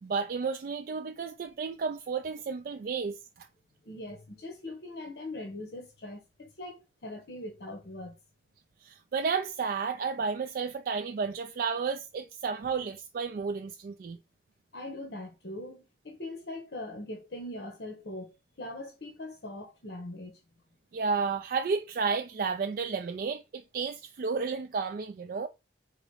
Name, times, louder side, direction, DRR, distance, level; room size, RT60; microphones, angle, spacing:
voice 1, 0.0-3.5 8.8-14.2 20.9-25.5, right 5 dB, 50° right, 0.3 m, -32 dB
voice 2, 3.8-8.2 14.7-20.4, left 1 dB, 65° left, 0.9 m, -41 dB
4.0 x 2.6 x 4.6 m
head